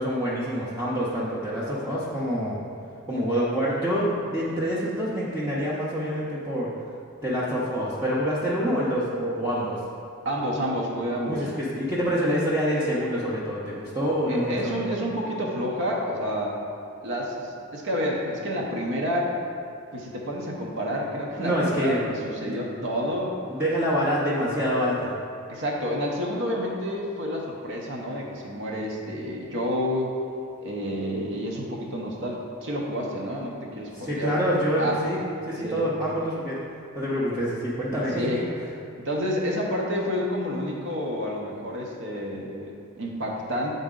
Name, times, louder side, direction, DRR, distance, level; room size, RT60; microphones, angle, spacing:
voice 1, 0.0-2.6 3.1-6.7 7.2-9.8 11.2-14.8 21.4-22.8 23.5-25.1 33.9-35.2 35.5-36.6 36.9-38.4, equal, 10° right, -9 dB, 0.6 m, -26 dB
voice 2, 10.2-11.5 14.3-16.5 17.0-19.3 19.9-23.3 25.5-30.1 30.6-34.3 34.8-35.0 35.6-35.8 38.2-38.4 39.0-43.7, equal, 60° right, -2 dB, 0.8 m, -29 dB
8.3 x 4.0 x 3.7 m, 2.4 s
head